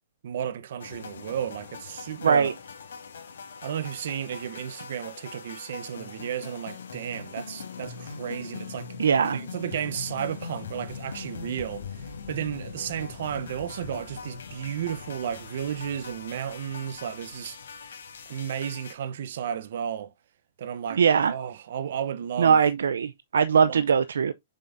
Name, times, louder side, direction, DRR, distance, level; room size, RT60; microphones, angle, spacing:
voice 1, 0.2-2.5 3.6-8.9 9.3-11.8 12.3-17.6 18.3-20.1 20.6-21.0 21.3-22.6 23.7-23.8, right 9 dB, 65° right, 0.9 m, -33 dB
sound 1, 0.8-18.9, left 5 dB, 80° left, 2.0 m, -41 dB
voice 2, 2.2-2.5 9.0-9.4 20.9-21.3 22.4-24.3, right 6 dB, 80° right, 0.6 m, -21 dB
7.4 x 5.6 x 2.6 m
hypercardioid pair, 130°, 0 cm